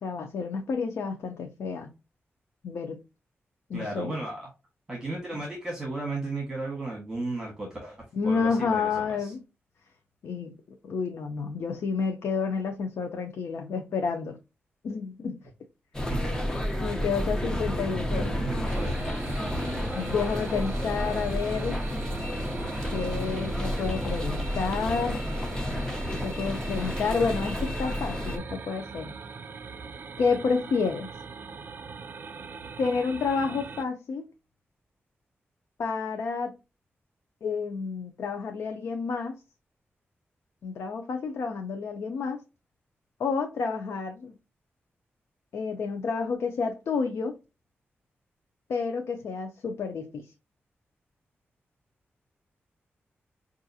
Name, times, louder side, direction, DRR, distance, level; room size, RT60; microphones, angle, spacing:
voice 1, 0.0-1.9 2.6-3.0 3.7-4.1 8.1-9.4 10.2-10.6 10.8-14.4 14.8-15.4 16.8-18.4 20.0-21.8 22.9-25.3 26.1-29.2 30.2-31.1 32.8-34.3 35.8-36.5 37.4-39.4 40.6-42.4 43.2-44.3 45.5-47.3 48.7-50.3, left 5 dB, 80° left, 0.5 m, -30 dB
voice 2, 3.7-4.5 4.9-9.3 16.1-16.5 18.1-19.1, right 2 dB, 15° right, 1.3 m, -35 dB
sound 1, 15.9-28.4, equal, 15° left, 0.6 m, -31 dB
sound 2, 18.7-33.8, right 5 dB, 50° right, 0.4 m, -41 dB
5.5 x 2.5 x 2.7 m
wide cardioid pair, 140°, 4 cm